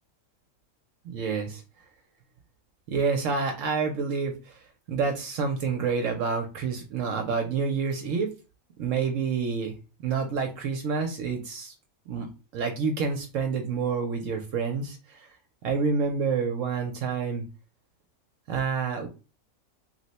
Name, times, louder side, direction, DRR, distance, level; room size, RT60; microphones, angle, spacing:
voice 1, 1.0-1.6 2.9-8.3 8.8-9.8 10.0-11.7 12.1-12.3 12.5-15.3 15.6-17.4 18.5-19.1, right 5 dB, 70° right, 4 dB, 0.9 m, -28 dB
2.9 x 2.1 x 4.0 m, 0.31 s
omnidirectional pair, 1.5 m